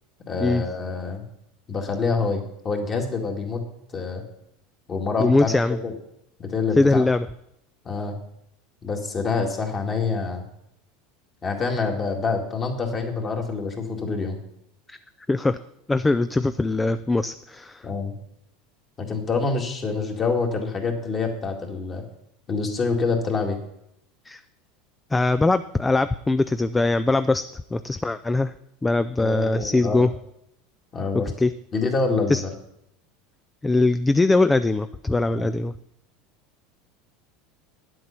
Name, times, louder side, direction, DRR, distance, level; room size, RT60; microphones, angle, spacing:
voice 1, 0.3-1.2 1.7-3.6 3.9-4.2 4.9-5.9 6.4-7.0 7.8-8.1 8.8-10.4 11.4-14.4 17.8-18.1 19.0-22.0 22.5-23.6 29.2-30.0 30.9-31.3 31.7-32.5 35.3-35.5, left 4 dB, 30° left, 2 dB, 2.1 m, -26 dB
voice 2, 5.2-5.8 6.8-7.3 14.9-15.0 15.3-15.6 15.9-17.9 24.3-24.4 25.1-28.5 28.8-30.1 31.4-31.5 32.3-32.4 33.6-35.7, left 2 dB, 10° left, 12 dB, 0.3 m, -21 dB
9.7 x 7.8 x 5.8 m, 0.78 s
supercardioid pair, 120°, 0 cm